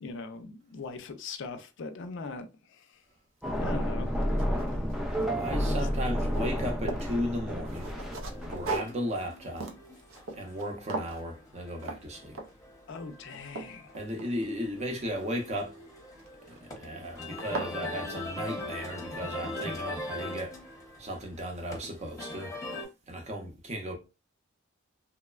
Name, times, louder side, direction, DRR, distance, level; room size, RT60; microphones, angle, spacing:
voice 1, 0.0-2.5 2.8-2.9 3.6-4.1 5.5-5.9 12.9-14.0, left 3 dB, 65° left, 0.4 m, -40 dB
sound 1, 3.4-8.8, equal, ahead, 0.3 m, -30 dB
sound 2, 3.5-3.6 4.0-5.5 5.8-7.1 7.6-10.6 10.9-11.2 11.8-12.0 12.3-12.7 13.1-14.7 16.2-16.6 17.0-17.1 17.4-17.8, right 3 dB, 80° right, 0.5 m, -39 dB
voice 2, 5.4-7.9 8.5-9.7 10.3-12.4 14.0-15.7 16.5-20.6 21.0-22.5 23.1-24.0, equal, 35° right, 0.6 m, -35 dB
sound 3, 7.7-22.9, left 2 dB, 15° left, 0.8 m, -42 dB
3.0 x 2.0 x 2.3 m
head